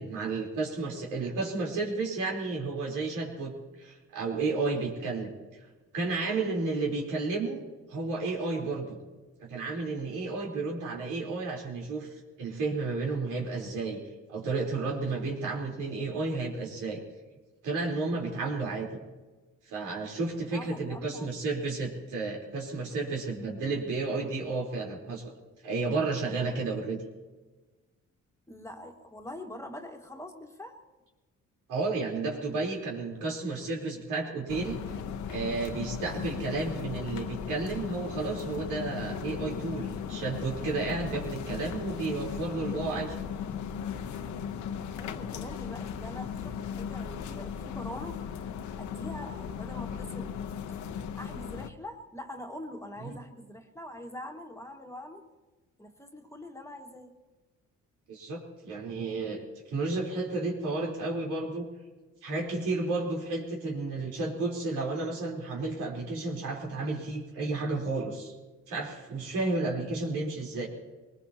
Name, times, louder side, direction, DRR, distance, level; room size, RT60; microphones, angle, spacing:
voice 1, 0.0-3.5 3.8-5.3 5.9-7.6 7.9-9.0 9.4-14.0 14.3-17.0 17.6-18.9 19.7-25.3 25.6-27.0 31.7-35.0 35.3-43.1 53.0-53.2 58.1-61.7 62.2-68.3 68.7-70.7, right 3 dB, 90° right, -2 dB, 3.8 m, -32 dB
voice 2, 20.5-21.3 28.5-30.8 44.9-48.5 48.8-50.4 51.2-55.2 55.8-57.1, left 1 dB, 10° left, 3 dB, 1.7 m, -44 dB
sound 1, 34.5-51.7, left 7 dB, 70° left, 1.0 m, -37 dB
23.0 x 20.0 x 2.9 m, 1.2 s
cardioid pair, 90°, 30 cm